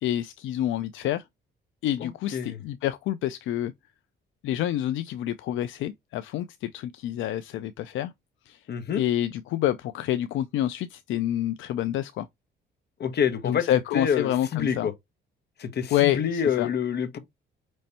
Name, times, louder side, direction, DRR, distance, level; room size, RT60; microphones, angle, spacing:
voice 1, 0.0-1.2 1.8-3.7 4.4-8.1 8.5-8.6 9.0-12.3 13.4-14.9 15.9-16.7, left 12 dB, 80° left, 0.4 m, -28 dB
voice 2, 2.0-2.6 8.7-9.0 13.0-13.7 13.9-14.9 15.6-17.2, left 7 dB, 55° left, 1.0 m, -27 dB
5.4 x 3.1 x 2.8 m
cardioid pair, 90°, 20 cm